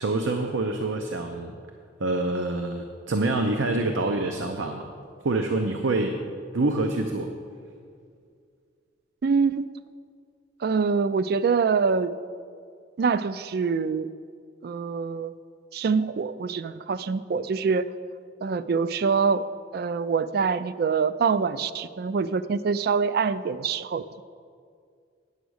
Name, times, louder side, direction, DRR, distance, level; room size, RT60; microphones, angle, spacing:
voice 1, 0.0-1.5 2.0-4.9 5.2-6.2 6.5-7.3, right 2 dB, 85° right, 4 dB, 0.6 m, -26 dB
voice 2, 9.2-9.7 10.6-12.1 13.0-14.1 14.6-15.3 15.7-17.9 18.4-19.4 19.7-24.2, right 5 dB, 55° right, 15 dB, 0.3 m, -25 dB
9.4 x 7.0 x 6.4 m, 2.2 s
head